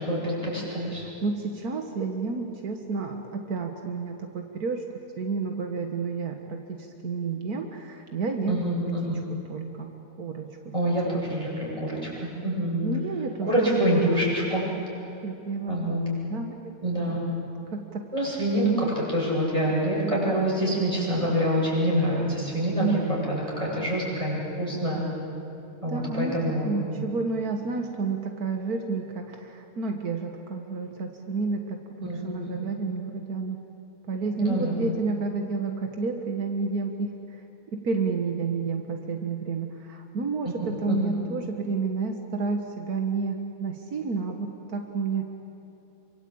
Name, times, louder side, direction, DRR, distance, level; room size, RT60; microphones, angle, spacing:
voice 1, 0.0-1.0 8.5-9.2 10.7-12.9 13.5-14.7 15.7-16.0 16.8-17.2 18.1-25.0 25.8-26.8 32.0-32.6 34.4-34.8 40.9-41.1, right 1 dB, 20° right, -5 dB, 8.2 m, -26 dB
voice 2, 1.2-4.8 5.2-8.6 9.0-9.9 10.2-10.5 11.0-11.2 12.8-13.5 14.0-14.3 15.2-15.7 16.3-16.7 17.7-18.1 25.9-33.6 34.1-37.4 37.8-45.3, right 4 dB, 80° right, 4 dB, 1.9 m, -30 dB
27.0 x 24.5 x 8.7 m, 2.8 s
omnidirectional pair, 1.6 m